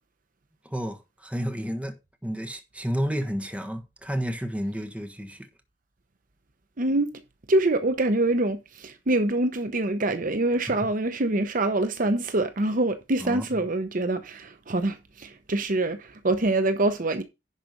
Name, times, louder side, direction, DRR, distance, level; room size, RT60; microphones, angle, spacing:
voice 1, 0.6-5.5 13.2-13.5, equal, 5° right, 1.5 m, -31 dB
voice 2, 6.8-7.1 7.5-17.2, right 2 dB, 50° right, 0.9 m, -25 dB
10.5 x 5.0 x 5.2 m
head